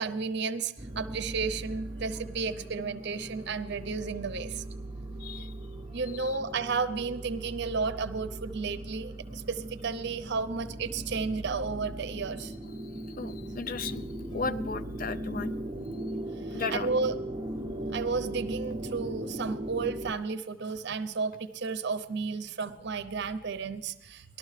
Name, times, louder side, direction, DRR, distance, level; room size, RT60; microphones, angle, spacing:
voice 1, 0.0-4.6 5.9-12.5 16.5-17.1 17.9-24.4, right 4 dB, 55° right, 12 dB, 0.6 m, -33 dB
sound 1, 0.8-20.1, right 1 dB, 25° right, 0.8 m, -38 dB
voice 2, 5.2-5.5 6.1-6.4 12.9-14.1 14.3-15.5 16.5-16.9, left 4 dB, 40° left, 14 dB, 0.4 m, -35 dB
18.5 x 12.5 x 3.3 m, 0.99 s
head